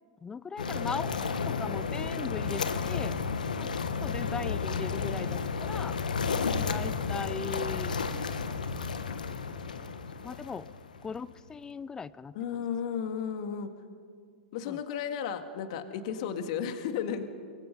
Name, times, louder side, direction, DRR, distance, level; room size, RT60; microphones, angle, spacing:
voice 1, 0.2-3.2 3.6-3.7 4.0-6.0 6.7-8.0 10.2-10.7 11.0-12.3 14.7-14.8, left 5 dB, 15° left, 19 dB, 0.5 m, -39 dB
sound 1, 0.6-11.4, left 5 dB, 80° left, 1.4 m, -32 dB
voice 2, 12.3-13.7 14.5-17.5, left 7 dB, 55° left, 8 dB, 2.0 m, -34 dB
24.0 x 23.5 x 5.5 m, 2.2 s
figure-of-eight pair, 105°, 4 cm